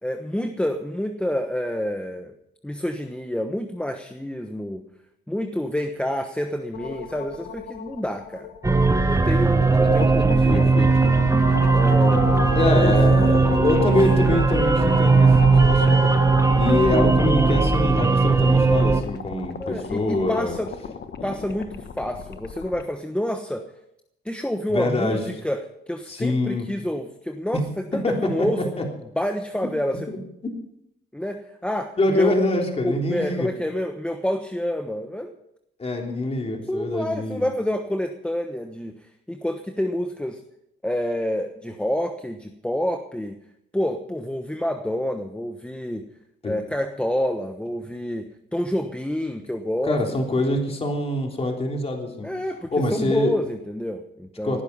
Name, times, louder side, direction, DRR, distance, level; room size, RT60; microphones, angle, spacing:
voice 1, 0.0-2.3 2.6-4.8 5.3-8.5 9.1-10.7 11.7-12.9 19.6-20.7 21.2-23.6 24.2-27.6 27.9-28.6 29.2-30.1 31.1-32.3 32.8-35.4 36.7-38.9 39.3-40.4 40.8-43.4 43.7-46.0 46.4-50.0 52.2-54.6, equal, 5° left, 6 dB, 1.2 m, -28 dB
sound 1, 6.7-22.8, left 6 dB, 60° left, 1.3 m, -33 dB
sound 2, 8.6-19.0, right 3 dB, 15° right, 1.5 m, -18 dB
voice 2, 10.5-11.1 12.6-16.0 16.5-20.5 21.2-21.3 24.7-25.2 26.1-26.7 27.9-28.5 28.8-28.9 30.1-30.2 32.0-33.5 35.8-37.5 46.4-46.6 49.8-52.3 52.7-53.3 54.4-54.6, left 2 dB, 30° left, 2 dB, 3.5 m, -24 dB
18.5 x 11.0 x 5.5 m, 0.79 s
cardioid pair, 90°, 20 cm